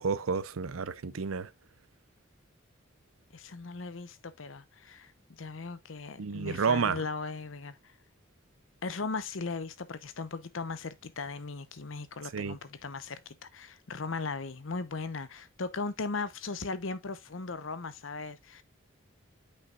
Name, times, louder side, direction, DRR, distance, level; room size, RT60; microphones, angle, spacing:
voice 1, 0.0-1.5 6.2-7.0 12.3-12.6, right 5 dB, 90° right, 0.6 m, -30 dB
voice 2, 3.3-5.1 5.4-7.8 8.8-18.6, left 4 dB, 75° left, 0.8 m, -38 dB
8.7 x 5.5 x 2.3 m
head